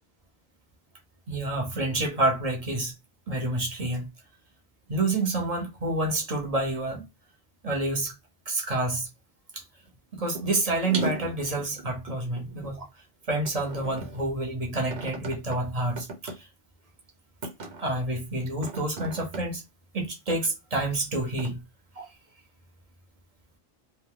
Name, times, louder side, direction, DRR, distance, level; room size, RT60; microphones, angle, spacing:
voice 1, 1.3-2.9 3.3-4.1 4.9-7.0 7.6-8.1 8.5-9.1 9.5-9.6 10.1-12.9 13.3-16.5 17.8-19.6 19.9-21.6 22.0-22.1, right 2 dB, 40° right, 0.8 m, -28 dB
sound 1, 10.3-10.5 10.8-12.8 13.4-14.2 14.9-15.6 16.0-16.3 17.0-17.1 17.4-17.8 18.5-19.4 20.3-20.4 21.4-21.5, right 2 dB, 75° right, 1.1 m, -35 dB
2.6 x 2.2 x 3.5 m
omnidirectional pair, 1.1 m